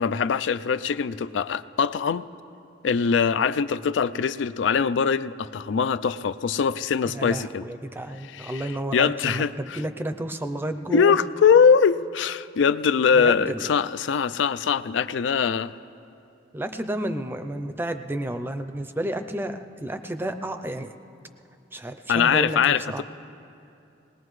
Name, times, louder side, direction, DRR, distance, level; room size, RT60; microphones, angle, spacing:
voice 1, 0.0-2.3 2.8-7.6 8.3-9.8 10.9-15.7 22.1-23.0, left 6 dB, 80° left, 14 dB, 0.4 m, -22 dB
voice 2, 7.0-11.1 13.1-13.7 16.5-20.9 21.7-23.0, right 1 dB, 10° right, 8 dB, 0.5 m, -31 dB
20.0 x 19.5 x 3.2 m, 2.7 s
head